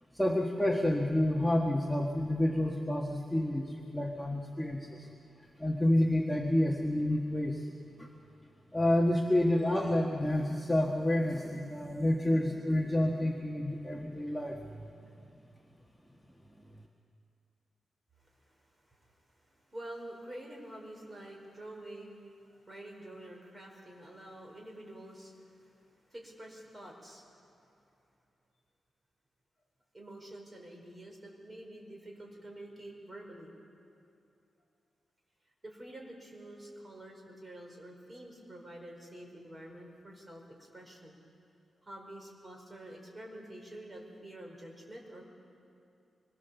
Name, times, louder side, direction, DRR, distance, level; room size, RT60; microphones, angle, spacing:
voice 1, 0.1-5.1 5.6-7.7 8.0-8.1 8.7-14.9, left 1 dB, 5° left, -1 dB, 1.6 m, -29 dB
voice 2, 18.2-27.4 29.9-33.5 35.6-41.2 41.8-45.2, right 1 dB, 25° right, 1 dB, 4.9 m, -48 dB
26.0 x 22.5 x 7.1 m, 2.6 s
wide cardioid pair, 110°, 0 cm